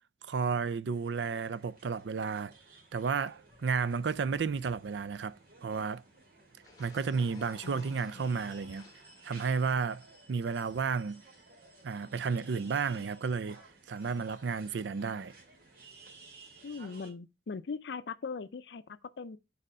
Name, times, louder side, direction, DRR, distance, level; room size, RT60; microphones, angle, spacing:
voice 1, 0.3-2.5 2.9-6.0 6.8-8.9 9.2-11.2 11.8-13.6 13.9-15.3, right 5 dB, 75° right, 0.4 m, -32 dB
sound 1, 0.9-17.1, right 3 dB, 55° right, 2.2 m, -56 dB
sound 2, 3.5-5.2 6.6-9.0, left 3 dB, 20° left, 1.5 m, -57 dB
voice 2, 7.6-8.4 16.6-19.4, left 5 dB, 65° left, 0.4 m, -41 dB
6.7 x 4.2 x 4.8 m
head